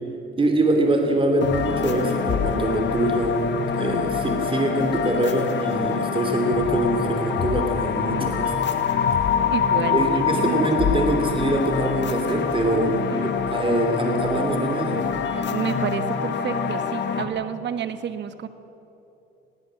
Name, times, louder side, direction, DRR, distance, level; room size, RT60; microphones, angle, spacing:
voice 1, 0.4-3.4 3.7-8.6 9.9-13.0 13.2-15.0, right 1 dB, 25° right, 3 dB, 2.9 m, -23 dB
sound 1, 1.4-17.2, left 6 dB, 65° left, 1.7 m, -25 dB
voice 2, 9.5-10.9 12.7-13.3 15.5-18.5, right 8 dB, 60° right, 11 dB, 1.2 m, -30 dB
19.5 x 17.5 x 7.7 m, 3.0 s
cardioid pair, 90°, 20 cm